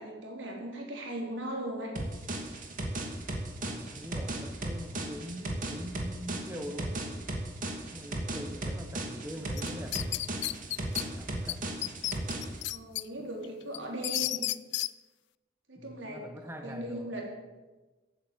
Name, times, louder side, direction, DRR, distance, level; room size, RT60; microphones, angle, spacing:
voice 1, 0.0-1.9 12.7-14.4 15.7-16.3 16.6-17.3, right 1 dB, 85° right, -1 dB, 4.3 m, -38 dB
sound 1, 2.0-12.6, right 1 dB, 45° right, 2.6 m, -36 dB
voice 2, 3.6-7.0 7.9-10.7 11.2-11.9 13.2-14.3 15.8-17.2, equal, 15° right, 6 dB, 1.3 m, -44 dB
sound 2, 9.6-11.0 11.5-11.6 11.8-13.0 13.4-14.9, left 16 dB, 70° left, 0.4 m, -32 dB
14.5 x 9.2 x 7.7 m, 1.2 s
head